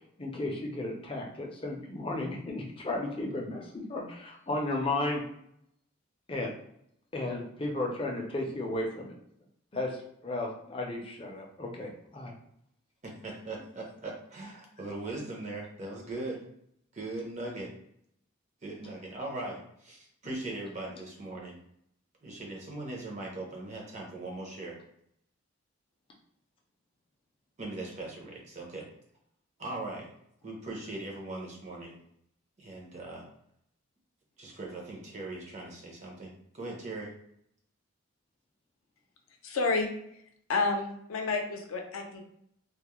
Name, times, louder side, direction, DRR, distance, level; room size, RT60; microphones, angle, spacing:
voice 1, 0.2-5.2 6.3-6.5 7.1-9.1 9.7-12.3, left 2 dB, 25° left, 0 dB, 0.4 m, -34 dB
voice 2, 13.0-16.4 16.9-17.7 18.6-21.6 22.2-24.8 27.6-28.9 29.6-30.1 30.4-32.0 32.6-33.3 34.4-37.1, right 2 dB, 35° right, -1 dB, 0.6 m, -40 dB
voice 3, 39.4-39.9 40.5-42.2, left 3 dB, 85° left, 3 dB, 0.5 m, -29 dB
2.3 x 2.0 x 2.9 m, 0.72 s
head